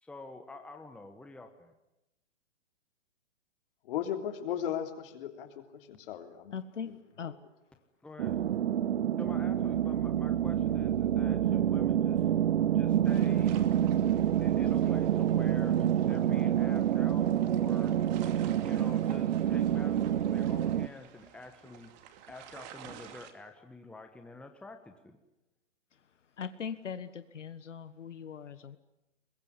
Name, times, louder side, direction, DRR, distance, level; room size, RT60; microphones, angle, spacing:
voice 1, 0.0-1.7 8.0-8.4 9.1-12.3 12.7-13.6 14.4-18.0 18.6-21.9 22.3-25.2, left 2 dB, 5° left, 5 dB, 1.4 m, -48 dB
voice 2, 3.8-6.5 6.9-7.0, left 9 dB, 50° left, 6 dB, 3.5 m, -36 dB
voice 3, 6.5-7.5 25.9-28.8, left 7 dB, 75° left, 12 dB, 1.5 m, -41 dB
sound 1, 8.2-20.9, right 10 dB, 55° right, 1.0 m, -27 dB
sound 2, 13.0-23.3, right 9 dB, 35° right, 2.6 m, -52 dB
24.0 x 22.0 x 9.9 m, 0.91 s
hypercardioid pair, 135°, 36 cm